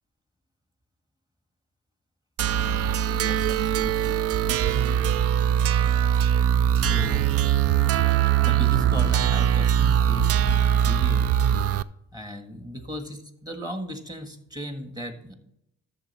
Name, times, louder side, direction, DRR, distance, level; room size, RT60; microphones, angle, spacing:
sound 1, 2.4-11.8, right 10 dB, 50° right, 0.4 m, -22 dB
voice 1, 3.1-4.2 6.8-7.4 8.4-11.2 12.1-15.3, equal, 15° right, 6 dB, 1.6 m, -37 dB
12.0 x 6.9 x 4.2 m, 0.78 s
cardioid pair, 90°, 30 cm